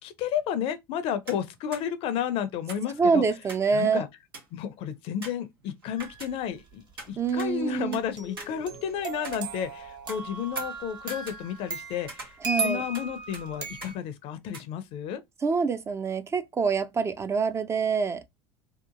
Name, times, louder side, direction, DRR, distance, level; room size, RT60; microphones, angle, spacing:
voice 1, 0.0-3.2 3.7-4.1 4.5-15.2, left 9 dB, 50° left, 0.5 m, -32 dB
sound 1, 1.3-1.5 1.7-1.8 2.7-3.7 4.0-4.1 4.3-4.6 5.2-6.6 7.0-8.0 8.4-9.8 10.1-11.8 12.1-13.1 13.3-13.4 13.8-14.0 14.5-14.6, right 3 dB, 90° right, 0.9 m, -44 dB
voice 2, 3.0-4.0 7.2-8.0 12.4-12.8 15.4-18.3, right 5 dB, 25° right, 0.4 m, -26 dB
sound 2, 6.0-6.4 8.2-13.9, right 3 dB, 40° right, 1.1 m, -36 dB
2.8 x 2.3 x 2.5 m
hypercardioid pair, 75°, 12 cm